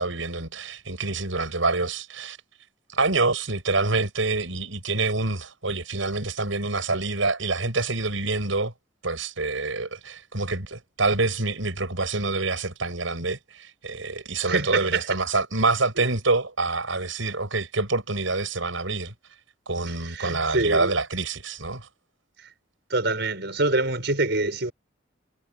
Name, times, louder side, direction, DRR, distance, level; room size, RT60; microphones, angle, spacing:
voice 1, 0.0-2.4 2.9-8.7 9.0-19.1 19.7-21.9, right 3 dB, 80° right, 6.0 m, -26 dB
voice 2, 14.5-15.1 19.9-20.9 22.9-24.7, right 2 dB, 60° right, 6.6 m, -25 dB
head